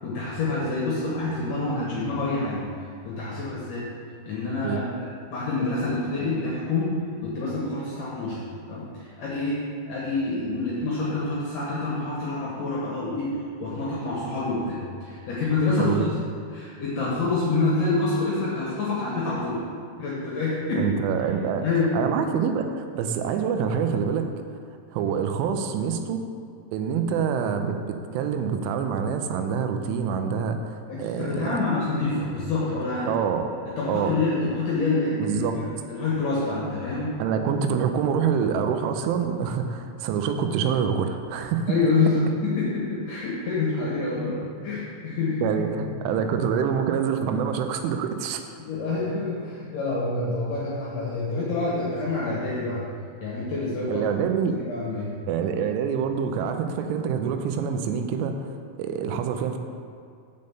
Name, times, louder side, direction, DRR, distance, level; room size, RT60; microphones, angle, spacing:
voice 1, 0.0-3.9 4.3-6.9 7.2-8.4 8.7-16.1 16.5-19.6 20.0-20.9 21.6-22.0 30.9-33.1 33.6-37.1 41.7-45.5 45.8-46.1 48.6-52.9 53.2-54.0 54.5-55.1, left 3 dB, 65° left, -7 dB, 2.1 m, -27 dB
voice 2, 15.8-16.1 20.8-21.7 21.9-24.3 24.9-26.2 26.7-31.6 33.0-33.5 33.9-34.2 35.2-35.6 37.2-41.8 45.4-48.4 53.9-54.6 55.3-59.6, right 7 dB, 85° right, 6 dB, 3.1 m, -26 dB
6.5 x 5.3 x 7.0 m, 2.3 s
omnidirectional pair, 5.5 m